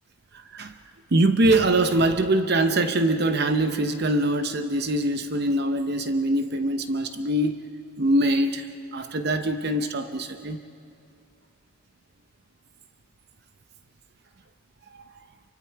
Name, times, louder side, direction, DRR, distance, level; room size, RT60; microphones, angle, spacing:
voice 1, 0.3-0.7 1.1-7.7 8.0-10.6, right 1 dB, 50° right, 8 dB, 0.8 m, -23 dB
28.0 x 24.5 x 4.6 m, 2.5 s
head